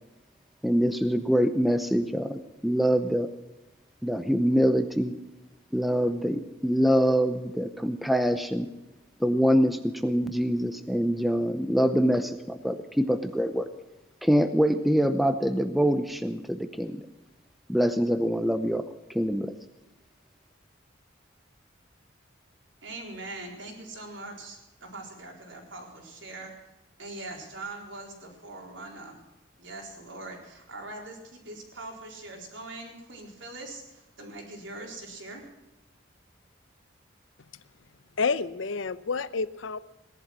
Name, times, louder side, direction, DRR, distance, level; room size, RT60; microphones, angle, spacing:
voice 1, 0.6-3.3 4.0-5.1 5.7-8.7 9.2-13.7 14.2-17.1 17.7-18.8 19.1-19.5, equal, ahead, 9 dB, 0.7 m, -25 dB
voice 2, 22.8-26.5 27.0-29.2 29.6-35.4, right 2 dB, 75° right, 1 dB, 4.2 m, -42 dB
voice 3, 38.2-39.8, left 4 dB, 85° left, 16 dB, 0.7 m, -29 dB
17.5 x 11.5 x 6.1 m, 1.0 s
head